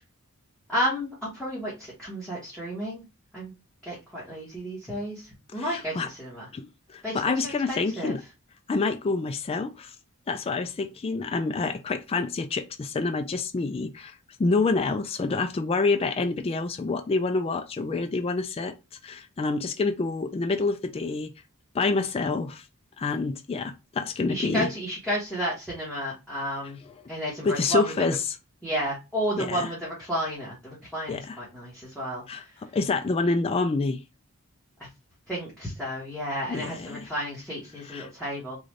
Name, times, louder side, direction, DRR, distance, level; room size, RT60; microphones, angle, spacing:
voice 1, 0.7-3.0 3.3-3.5 3.8-6.5 7.0-8.1 24.3-26.8 27.1-27.9 28.6-32.2 35.3-38.6, equal, 5° left, 1.3 m, -32 dB
voice 2, 5.6-6.1 6.5-8.2 8.7-9.9 10.3-18.7 19.0-21.3 21.7-22.6 23.0-24.7 27.4-28.2 29.4-29.7 31.1-31.4 32.3-34.0 36.5-37.1 37.9-38.1, left 3 dB, 25° left, 0.3 m, -27 dB
3.8 x 2.6 x 3.1 m
head